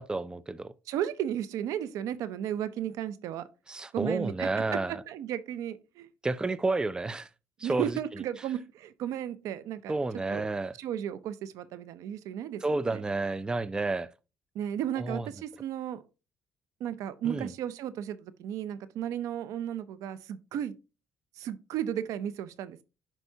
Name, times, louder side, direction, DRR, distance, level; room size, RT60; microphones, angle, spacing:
voice 1, 0.0-0.7 3.7-5.0 6.2-7.3 7.6-8.0 9.9-10.7 12.6-14.1 15.0-15.3 17.2-17.5, right 3 dB, 15° right, 0.4 m, -30 dB
voice 2, 0.9-3.5 3.9-4.6 5.1-6.1 7.6-10.0 10.3-10.4 10.8-12.6 12.9-13.0 14.5-16.0 16.8-20.7 21.4-22.8, right 10 dB, 80° right, 0.6 m, -34 dB
10.5 x 4.5 x 2.8 m
cardioid pair, 95°, 5 cm